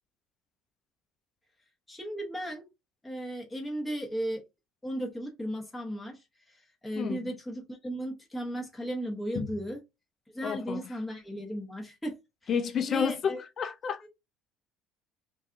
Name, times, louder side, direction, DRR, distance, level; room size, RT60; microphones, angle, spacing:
voice 1, 1.9-2.6 3.0-4.4 4.8-9.8 10.3-12.2 12.9-13.4 14.0-14.1, equal, 10° left, 1.0 m, -35 dB
voice 2, 10.4-10.8 12.5-14.0, left 7 dB, 45° left, 0.5 m, -30 dB
2.6 x 2.3 x 2.4 m
hypercardioid pair, 70°, 0 cm